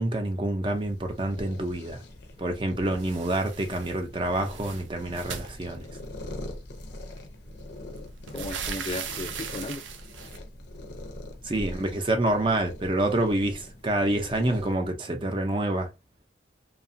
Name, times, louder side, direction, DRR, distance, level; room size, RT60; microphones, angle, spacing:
voice 1, 0.0-2.0 2.4-5.9 11.4-15.9, right 1 dB, 30° right, 0.5 m, -27 dB
sound 1, 0.6-14.7, left 1 dB, 65° left, 0.6 m, -43 dB
sound 2, 3.0-4.0 4.3-6.2 7.2-7.3 7.7-10.4, right 7 dB, 90° right, 0.5 m, -38 dB
voice 2, 8.3-9.8 11.5-12.0, left 2 dB, 30° left, 0.3 m, -36 dB
2.8 x 2.2 x 2.6 m
head